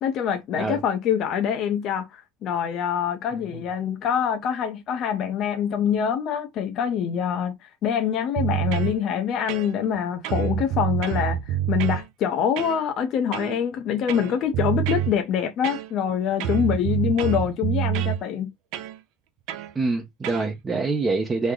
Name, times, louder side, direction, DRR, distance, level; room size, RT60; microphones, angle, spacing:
voice 1, 0.0-7.5 7.8-18.5, left 8 dB, 50° left, 0.6 m, -25 dB
sound 1, 8.4-9.0 9.5-10.0 10.2-12.0 12.6-12.8 13.3-13.6 14.1-15.1 15.6-16.1 16.4-18.2 18.7-19.0 19.5-19.7 20.2-20.5, right 11 dB, 70° right, 0.6 m, -27 dB
voice 2, 19.7-21.5, right 3 dB, 20° right, 0.7 m, -25 dB
3.2 x 2.1 x 3.6 m
supercardioid pair, 120°, 0 cm